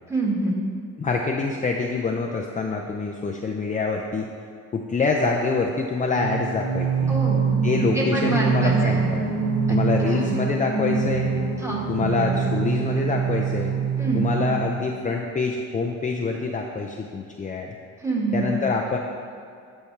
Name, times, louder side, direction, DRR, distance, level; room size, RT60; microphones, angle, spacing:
voice 1, 0.1-0.6 7.1-7.5 7.9-9.0 9.7-9.8 10.0-10.3 11.6-11.8 14.0-14.3 18.0-18.5, right 2 dB, 10° right, -3 dB, 1.6 m, -26 dB
voice 2, 1.0-4.3 4.7-7.1 7.6-9.3 9.7-11.3 11.9-13.7 14.1-17.7 18.3-19.0, left 4 dB, 25° left, 1 dB, 0.5 m, -26 dB
Singing, 6.1-15.0, right 5 dB, 55° right, 1.3 m, -24 dB
12.0 x 4.4 x 3.3 m, 2.4 s
cardioid pair, 90°, 30 cm